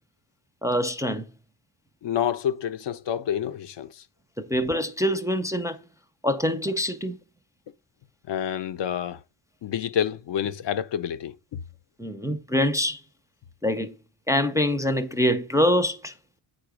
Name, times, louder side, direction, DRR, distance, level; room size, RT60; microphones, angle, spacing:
voice 1, 0.6-1.3 4.4-5.8 6.2-7.2 12.0-13.0 13.6-13.9 14.3-16.1, equal, 5° right, 0.5 m, -24 dB
voice 2, 2.0-4.0 8.3-9.2 9.6-11.6, left 9 dB, 65° left, 0.6 m, -28 dB
8.7 x 3.8 x 5.0 m
cardioid pair, 110°, 47 cm